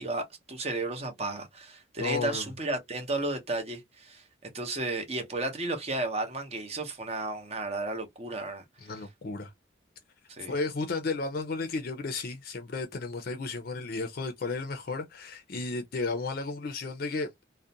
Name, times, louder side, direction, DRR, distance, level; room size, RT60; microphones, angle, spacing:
voice 1, 0.0-4.2 4.5-8.6 10.3-10.5, right 2 dB, 35° right, 0.7 m, -33 dB
voice 2, 2.0-2.5 8.8-9.5 10.5-17.4, left 3 dB, 50° left, 0.4 m, -33 dB
2.4 x 2.1 x 2.7 m
head